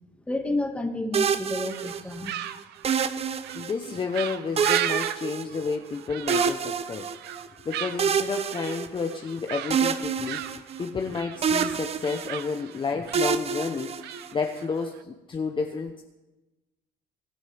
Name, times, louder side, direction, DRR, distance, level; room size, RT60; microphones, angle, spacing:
voice 1, 0.3-2.3, left 2 dB, 5° left, 3 dB, 1.8 m, -30 dB
sound 1, 1.1-2.3 2.8-4.0 4.6-5.9 6.3-7.5 8.0-9.3 9.7-11.1 11.4-12.6 13.1-14.5, right 6 dB, 35° right, 0.7 m, -27 dB
sound 2, 1.7-15.0, right 12 dB, 80° right, 0.7 m, -36 dB
voice 2, 3.5-7.1 7.6-16.0, left 4 dB, 30° left, 4 dB, 0.9 m, -31 dB
22.0 x 8.8 x 3.5 m, 1.1 s
cardioid pair, 110°, 17 cm